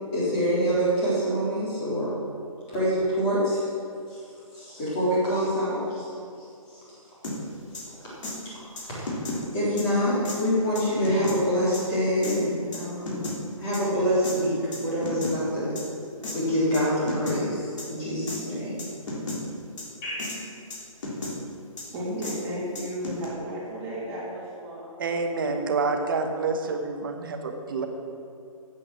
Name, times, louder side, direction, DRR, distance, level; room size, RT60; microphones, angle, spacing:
voice 1, 0.1-2.1 2.7-3.6 4.1-4.2 4.5-6.1 8.6-8.7 9.0-9.1 9.5-13.2 13.6-15.8 16.3-18.8 20.0-20.3, equal, 15° left, -9 dB, 3.6 m, -25 dB
sound 1, 7.2-7.4 7.7-7.8 8.2-8.4 8.8-9.4 9.8-9.9 10.3-10.4 10.8-11.4 11.7-11.8 12.2-12.4 12.7-13.4 13.7-13.8 14.2-14.4 14.7-15.4 15.8-15.9 16.2-16.4 16.7-16.8 17.1-17.4 17.8-17.9 18.3-18.4 18.8-19.4 19.8-19.9 20.2-20.4 20.7-21.3 21.8-21.9 22.2-22.3 22.8-23.3, left 2 dB, 60° left, 3.4 m, -33 dB
voice 2, 21.9-24.9, equal, 15° right, -9 dB, 3.0 m, -33 dB
voice 3, 25.0-27.9, right 4 dB, 40° right, 4 dB, 1.1 m, -28 dB
11.5 x 8.7 x 6.2 m, 2.5 s
hypercardioid pair, 170°, 18 cm